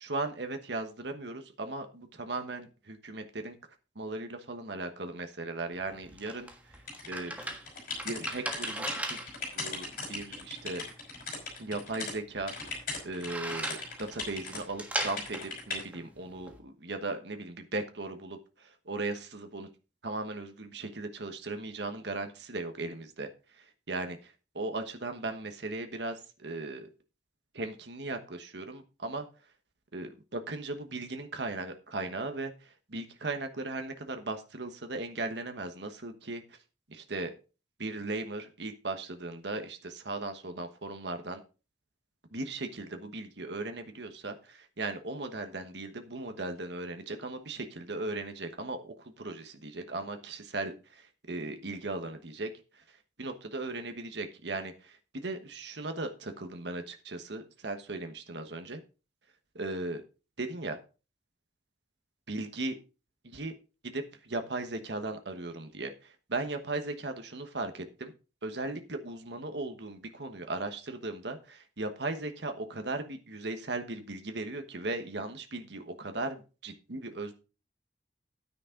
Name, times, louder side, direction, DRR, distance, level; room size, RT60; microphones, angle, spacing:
voice 1, 0.0-3.6 3.9-6.5 7.1-7.3 8.0-9.2 9.5-10.8 11.6-12.5 13.0-19.7 20.0-23.3 23.6-26.9 27.5-29.2 29.9-36.4 36.9-37.3 37.8-41.4 42.3-52.5 53.2-58.8 59.5-60.0 60.4-60.8 62.3-62.8 63.2-63.5 63.8-68.1 68.4-77.3, right 2 dB, 65° right, 6 dB, 1.2 m, -37 dB
sound 1, 5.7-16.6, right 1 dB, 10° right, 1.4 m, -40 dB
sound 2, 6.9-12.1 12.5-14.6 15.0-15.8, left 3 dB, 50° left, 5.4 m, -39 dB
9.7 x 9.6 x 3.8 m, 0.34 s
head